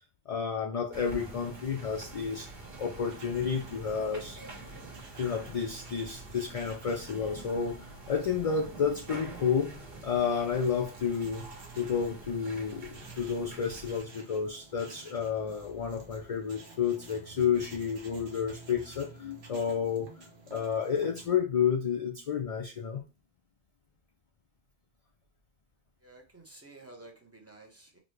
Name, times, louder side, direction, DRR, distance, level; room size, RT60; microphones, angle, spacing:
voice 1, 0.3-2.5 2.8-4.4 5.2-7.8 8.1-9.7 10.0-11.4 11.7-23.0, left 6 dB, 55° left, 3 dB, 0.4 m, -31 dB
sound 1, 0.9-14.0, right 3 dB, 60° right, 1.3 m, -46 dB
sound 2, 3.0-21.3, right 3 dB, 80° right, 1.1 m, -53 dB
voice 2, 26.0-28.0, right 2 dB, 15° right, 0 dB, 0.6 m, -52 dB
4.1 x 2.2 x 3.1 m, 0.31 s
omnidirectional pair, 1.1 m